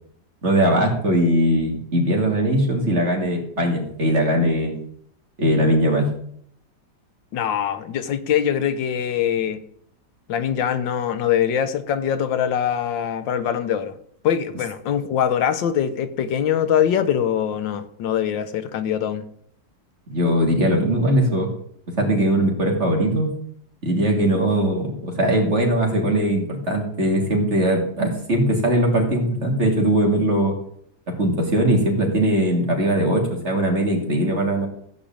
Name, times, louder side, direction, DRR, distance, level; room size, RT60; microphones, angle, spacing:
voice 1, 0.4-4.8 5.4-6.1 20.1-21.5 22.0-23.3 23.8-30.5 31.1-34.7, right 1 dB, 35° right, 1 dB, 3.0 m, -20 dB
voice 2, 7.3-9.6 10.3-14.0 14.2-19.3, left 9 dB, 90° left, 11 dB, 1.7 m, -23 dB
15.0 x 5.2 x 8.7 m, 0.67 s
omnidirectional pair, 2.0 m